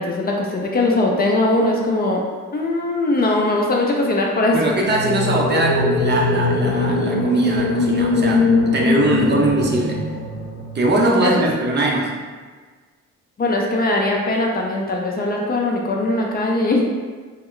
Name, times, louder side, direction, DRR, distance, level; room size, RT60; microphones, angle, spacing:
voice 1, 0.0-2.2 2.5-4.6 11.2-11.5 13.4-16.8, left 2 dB, 30° left, -1 dB, 0.4 m, -20 dB
voice 2, 4.5-10.0 10.7-12.2, right 2 dB, 35° right, -1 dB, 0.5 m, -21 dB
sound 1, 4.8-10.9, left 3 dB, 75° left, 0.8 m, -21 dB
2.2 x 2.1 x 3.7 m, 1.5 s
cardioid pair, 90°, 30 cm